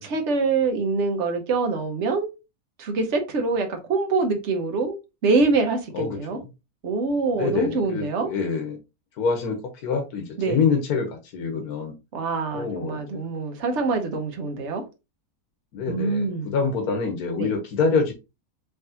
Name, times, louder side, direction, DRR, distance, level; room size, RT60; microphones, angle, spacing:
voice 1, 0.0-2.3 2.8-5.0 5.2-6.4 6.8-8.3 10.4-10.6 12.1-14.8 15.8-16.6 17.4-17.5, right 4 dB, 55° right, 1.2 m, -25 dB
voice 2, 5.9-6.4 7.3-8.8 9.2-11.9 12.5-13.2 15.7-18.1, left 5 dB, 85° left, 1.5 m, -26 dB
4.7 x 3.4 x 2.8 m
omnidirectional pair, 1.6 m